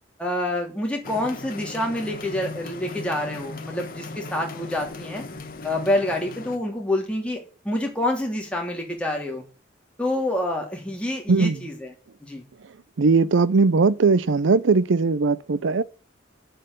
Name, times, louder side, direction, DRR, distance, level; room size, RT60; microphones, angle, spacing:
voice 1, 0.2-5.2 5.6-7.4 7.6-9.4 10.0-11.9 12.2-12.4, left 1 dB, 5° left, 3.0 m, -27 dB
sound 1, 1.0-6.6, left 3 dB, 45° left, 1.4 m, -37 dB
voice 2, 13.0-15.8, right 4 dB, 75° right, 0.5 m, -19 dB
7.9 x 7.6 x 7.9 m
head